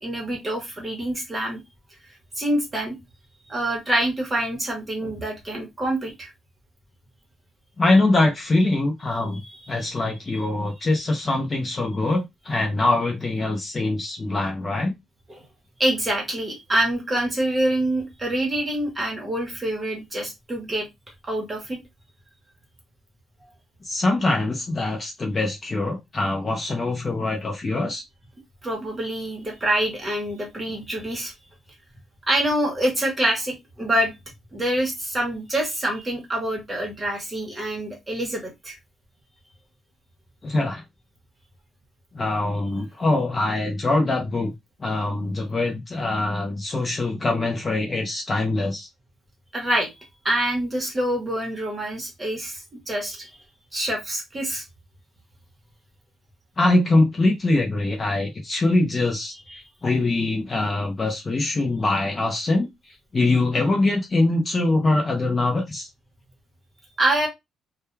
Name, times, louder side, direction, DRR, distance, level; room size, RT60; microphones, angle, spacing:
voice 1, 0.0-1.6 2.4-2.9 3.5-6.3 9.6-9.8 15.3-15.4 15.8-20.9 21.2-21.8 28.6-31.3 32.3-34.1 34.5-38.8 49.5-49.9 50.2-53.3 53.7-54.6 59.5-59.6 67.0-67.3, right 1 dB, 15° right, 1.0 m, -26 dB
voice 2, 7.8-14.9 23.8-28.0 40.4-40.8 42.1-44.5 44.8-48.9 56.6-65.9, left 2 dB, 25° left, 0.5 m, -23 dB
2.2 x 2.2 x 3.0 m
cardioid pair, 155°, 0 cm